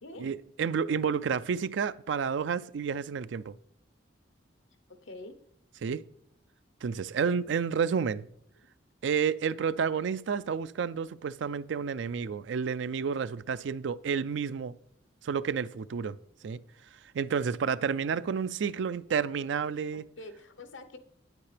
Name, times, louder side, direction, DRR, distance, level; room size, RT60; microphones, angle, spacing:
voice 1, 0.2-3.5 5.8-6.0 6.8-8.3 9.0-14.8 15.2-16.2 16.4-16.6 17.1-20.1, right 6 dB, 70° right, 0.4 m, -30 dB
voice 2, 5.0-5.3 20.2-21.0, left 2 dB, 85° left, 0.9 m, -45 dB
9.5 x 8.2 x 3.3 m
head